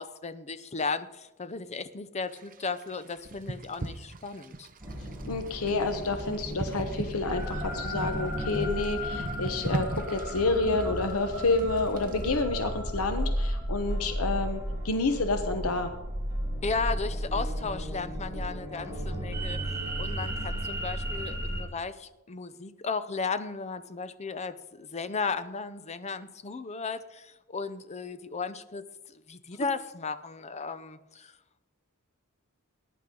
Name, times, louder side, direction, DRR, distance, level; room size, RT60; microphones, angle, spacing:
voice 1, 0.0-4.7 16.6-19.6 20.0-28.8 29.1-31.3, left 4 dB, 30° left, 12 dB, 0.6 m, -35 dB
sound 1, 2.3-12.4, right 2 dB, 40° right, 0.8 m, -40 dB
sound 2, 4.8-21.6, equal, 15° right, 3.4 m, -34 dB
voice 2, 5.2-15.9, left 3 dB, 80° left, 7 dB, 1.0 m, -29 dB
19.5 x 10.5 x 3.8 m, 1.0 s
head